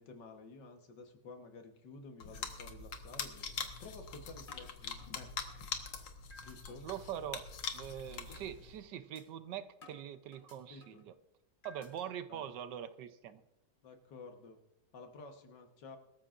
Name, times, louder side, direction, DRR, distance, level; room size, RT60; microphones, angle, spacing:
voice 1, 0.0-5.7 6.4-6.9 10.7-11.0 12.3-12.5 13.8-14.6 14.9-16.0, left 3 dB, 70° left, 5 dB, 1.9 m, -52 dB
sound 1, 1.8-2.1 2.5-2.6 3.0-3.1 3.8-3.9 4.5-5.7 6.3-6.7 7.2-7.4 7.8-7.9 8.3-8.5 9.1-9.2 9.8-11.1 11.6-12.1, left 2 dB, 25° left, 3.3 m, -59 dB
sound 2, 2.2-8.8, left 6 dB, 90° left, 1.9 m, -43 dB
voice 2, 6.8-11.1 11.6-13.4, right 10 dB, 75° right, 11 dB, 1.3 m, -43 dB
22.0 x 14.0 x 2.5 m, 0.89 s
omnidirectional pair, 2.0 m